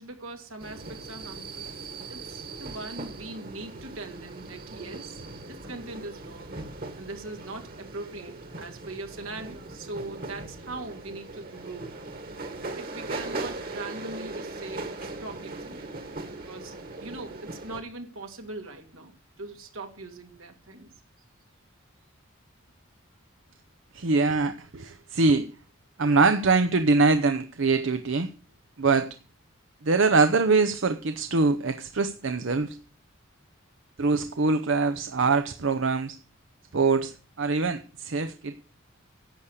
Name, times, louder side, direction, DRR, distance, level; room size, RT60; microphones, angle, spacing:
voice 1, 0.0-1.8 2.1-6.6 6.9-12.0 12.7-15.9 16.4-16.7 17.0-20.9, right 2 dB, 85° right, 2.5 m, -41 dB
sound 1, 0.6-17.8, right 2 dB, 45° right, 1.9 m, -39 dB
voice 2, 23.9-25.5 26.0-28.3 28.8-29.1 29.8-32.8 34.0-36.2 36.7-38.5, right 3 dB, 70° right, 0.7 m, -23 dB
11.5 x 8.3 x 6.5 m
head